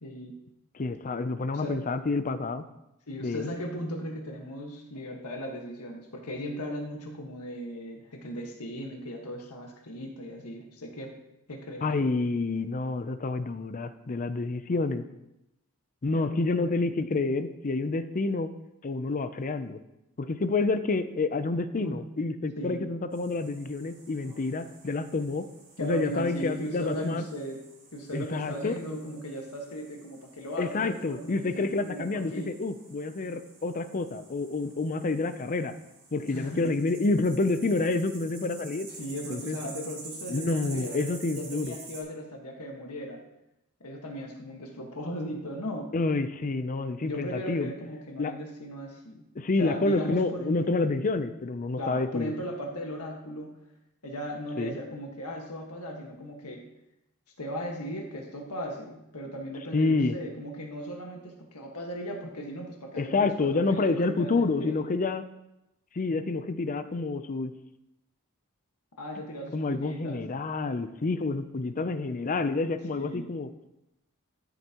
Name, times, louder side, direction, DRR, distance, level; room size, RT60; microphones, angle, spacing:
voice 1, 0.0-0.4 1.5-1.8 3.1-11.1 11.5-12.3 21.8-22.1 22.6-22.8 25.8-27.6 27.9-32.5 36.3-36.8 39.0-43.2 43.8-45.9 47.0-49.3 49.6-50.5 51.8-53.6 54.0-56.7 57.4-64.8 69.0-70.2 70.5-70.7 72.9-73.3, equal, 90° left, 1 dB, 1.6 m, -37 dB
voice 2, 0.7-2.6 3.2-3.5 11.8-15.0 16.0-18.5 18.8-19.8 20.2-25.4 25.8-27.2 28.1-28.7 30.6-35.7 36.1-38.9 39.3-39.6 40.3-41.7 45.9-47.7 48.2-48.3 49.4-52.3 54.6-54.7 59.7-60.2 63.0-65.2 65.9-67.5 69.5-73.5, left 3 dB, 35° left, 11 dB, 0.5 m, -28 dB
sound 1, 23.1-42.0, right 3 dB, 40° right, 3.6 m, -49 dB
13.5 x 8.1 x 3.0 m, 0.89 s
head